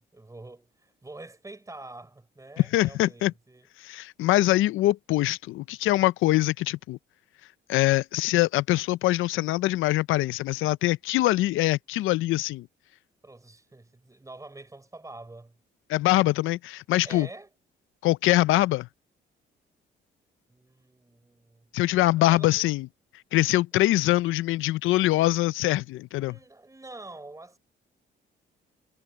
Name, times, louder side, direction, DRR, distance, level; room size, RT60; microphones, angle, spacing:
voice 1, 0.0-3.7 13.2-15.6 17.0-17.5 20.5-21.7 22.1-22.7 23.7-23.9 26.1-27.6, right 2 dB, 15° right, 5.1 m, -46 dB
voice 2, 2.6-3.3 3.8-7.0 7.7-12.7 15.9-17.3 18.0-18.9 21.7-22.9 23.3-26.3, left 17 dB, 85° left, 0.5 m, -23 dB
cardioid pair, 90°, 20 cm